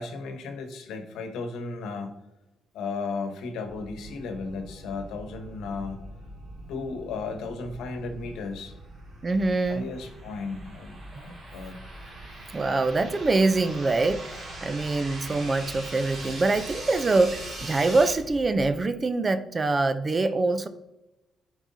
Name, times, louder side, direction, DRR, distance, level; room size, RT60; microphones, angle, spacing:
voice 1, 0.0-2.1 2.7-6.0 6.7-8.7 9.7-11.8, left 4 dB, 85° left, 6 dB, 1.0 m, -35 dB
sound 1, 3.6-18.8, right 1 dB, 60° right, 1.7 m, -46 dB
voice 2, 9.2-9.9 11.1-11.2 12.5-20.7, right 3 dB, 30° right, 12 dB, 0.5 m, -24 dB
sound 2, 9.2-18.1, right 2 dB, 45° right, 2.1 m, -41 dB
10.5 x 4.7 x 2.7 m, 0.97 s
cardioid pair, 90°, 0 cm